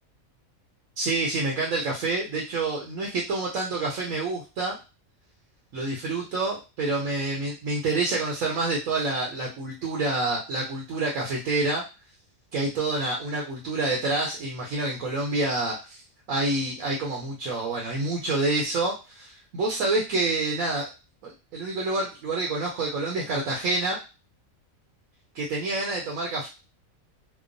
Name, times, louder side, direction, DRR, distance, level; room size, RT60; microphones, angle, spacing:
voice 1, 1.0-4.8 5.7-11.8 12.5-16.0 16.3-20.9 21.2-24.0 25.3-26.5, right 2 dB, 75° right, -2 dB, 1.1 m, -27 dB
2.9 x 2.0 x 2.5 m, 0.29 s
omnidirectional pair, 1.4 m